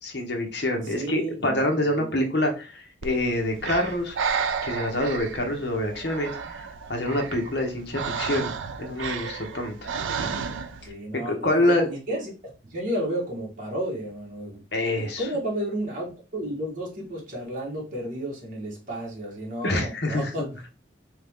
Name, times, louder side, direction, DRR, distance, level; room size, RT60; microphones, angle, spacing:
voice 1, 0.0-4.2 4.6-6.6 6.9-9.9 11.2-11.9 14.7-15.2 19.6-20.5, left 1 dB, 60° left, 1.1 m, -26 dB
voice 2, 0.8-2.1 10.8-20.5, right 1 dB, 45° right, 1.5 m, -32 dB
Breathing, 3.0-10.9, right 6 dB, 90° right, 0.5 m, -32 dB
4.0 x 3.1 x 3.6 m
head